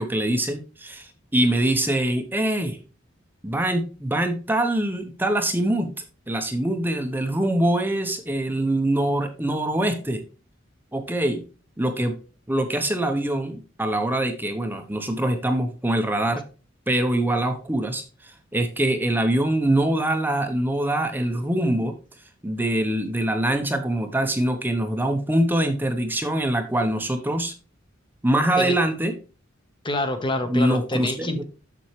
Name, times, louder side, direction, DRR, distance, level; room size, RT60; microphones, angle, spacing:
voice 1, 0.0-2.8 3.4-5.9 6.3-10.2 10.9-11.4 11.8-12.1 12.5-16.4 16.9-21.9 22.4-27.5 28.2-29.1 30.5-31.4, right 1 dB, 10° right, 6 dB, 0.8 m, -24 dB
voice 2, 29.8-31.4, left 1 dB, 25° left, 8 dB, 1.1 m, -27 dB
7.3 x 6.9 x 3.1 m, 0.34 s
head